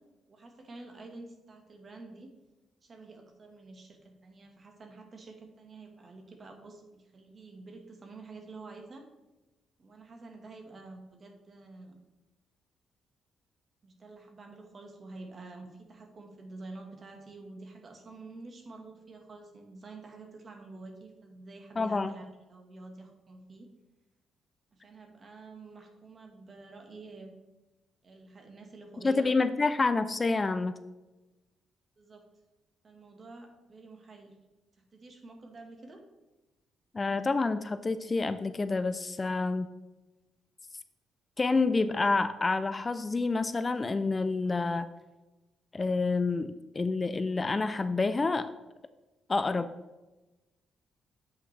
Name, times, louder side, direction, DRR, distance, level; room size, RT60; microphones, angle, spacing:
voice 1, 0.3-2.3 2.8-9.0 9.8-12.0 13.8-23.7 24.7-27.3 28.0-29.7 32.0-32.2 32.8-34.4 34.8-36.0, right 3 dB, 40° right, 3 dB, 1.4 m, -48 dB
voice 2, 21.8-22.1 29.0-30.7 36.9-39.7 41.4-44.9 45.7-48.5 49.3-49.7, left 3 dB, 25° left, 12 dB, 0.3 m, -28 dB
8.4 x 5.7 x 3.3 m, 1.1 s
cardioid pair, 90°, 0 cm